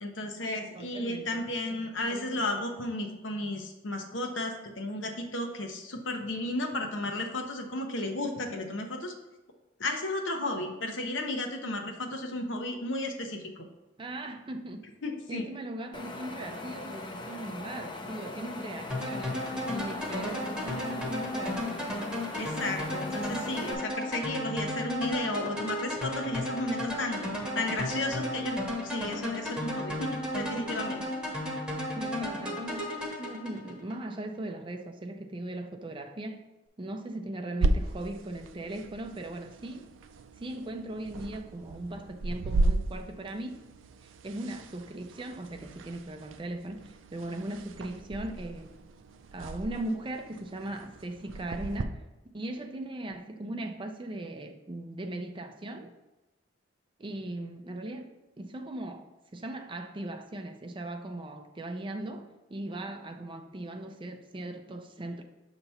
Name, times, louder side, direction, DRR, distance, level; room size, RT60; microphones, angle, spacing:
voice 1, 0.0-9.1 9.8-13.7 15.0-15.5 22.4-27.2 27.5-31.0, left 1 dB, 75° left, 4 dB, 0.8 m, -33 dB
voice 2, 0.7-1.4 1.7-1.8 2.1-2.4 14.0-14.9 15.3-21.9 31.9-36.4 36.8-39.9 40.4-43.6 44.0-48.7 49.3-52.0 52.3-55.9 57.0-58.1 58.4-59.1 59.3-65.2, right 1 dB, 25° right, 6 dB, 0.4 m, -39 dB
Wind, 15.9-23.7, left 2 dB, 25° left, 0.5 m, -41 dB
sound 1, 18.9-34.0, left 1 dB, 5° right, 1.0 m, -34 dB
sound 2, 37.6-51.8, right 2 dB, 85° right, 0.4 m, -35 dB
6.6 x 3.0 x 5.5 m, 1.0 s
head